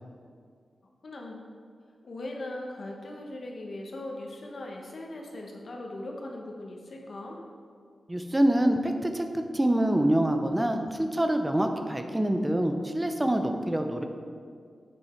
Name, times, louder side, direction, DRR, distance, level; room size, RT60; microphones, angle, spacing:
voice 1, 1.0-1.5 2.0-7.4, left 1 dB, 50° left, 0 dB, 1.1 m, -39 dB
voice 2, 8.1-14.0, right 1 dB, 10° right, 5 dB, 0.5 m, -26 dB
8.2 x 6.7 x 4.4 m, 2.1 s
wide cardioid pair, 170°, 0 cm